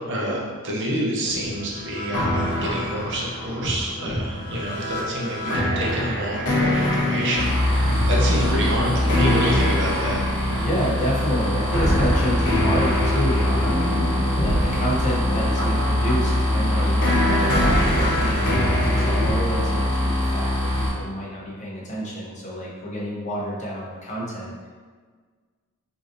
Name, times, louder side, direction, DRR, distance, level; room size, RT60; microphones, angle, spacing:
voice 1, 0.0-10.2, right 1 dB, 55° right, -3 dB, 0.7 m, -27 dB
sound 1, 1.2-11.0 11.7-19.3, left 1 dB, 55° left, 1.0 m, -25 dB
sound 2, 7.3-20.9, left 1 dB, 20° right, 1.3 m, -23 dB
voice 2, 10.6-24.7, equal, 30° left, -5 dB, 0.8 m, -29 dB
4.9 x 2.6 x 2.6 m, 1.5 s
head